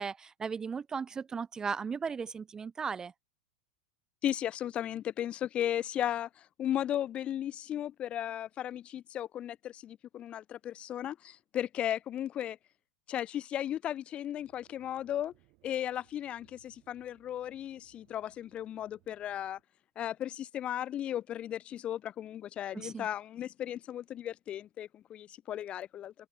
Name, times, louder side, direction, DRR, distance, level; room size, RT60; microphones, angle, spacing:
voice 1, 0.0-3.1 22.7-23.1, right 6 dB, 20° right, 0.4 m, -36 dB
voice 2, 4.2-12.6 13.1-15.3 15.6-19.6 20.0-26.1, left 11 dB, 35° left, 0.8 m, -35 dB
sound 1, 14.4-19.6, right 26 dB, 50° right, 7.6 m, -68 dB
hypercardioid pair, 105°, 3 cm